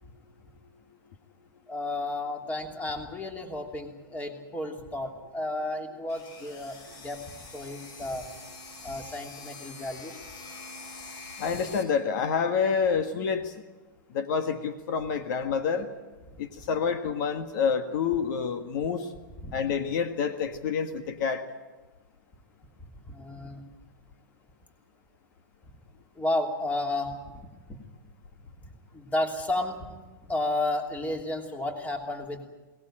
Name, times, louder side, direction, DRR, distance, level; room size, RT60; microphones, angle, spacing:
voice 1, 1.7-7.2 7.5-8.3 8.8-10.3 11.5-11.6 19.4-19.6 23.1-23.6 26.2-27.8 28.9-32.5, left 2 dB, 15° left, 4 dB, 3.0 m, -32 dB
sound 1, 6.1-11.8, left 3 dB, 35° left, 4.6 m, -45 dB
voice 2, 11.4-13.5 14.1-15.9 16.4-19.1 19.5-21.4, left 6 dB, 60° left, 8 dB, 1.7 m, -28 dB
22.0 x 19.0 x 8.9 m, 1.2 s
hypercardioid pair, 135°, 11 cm